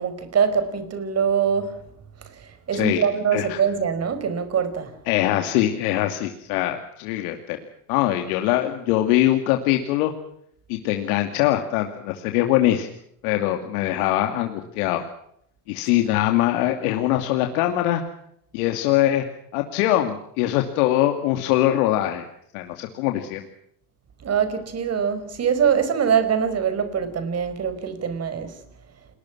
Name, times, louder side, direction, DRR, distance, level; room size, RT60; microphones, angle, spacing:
voice 1, 0.0-1.8 2.4-4.9 24.2-28.6, right 7 dB, 35° right, 5.1 m, -23 dB
voice 2, 2.7-3.0 3.3-3.6 5.1-7.6 7.9-10.1 10.7-12.9 13.2-15.0 15.7-18.0 18.5-19.3 19.5-22.3 22.5-23.5, left 14 dB, 70° left, 2.6 m, -22 dB
29.0 x 21.5 x 6.0 m
supercardioid pair, 100°, 45 cm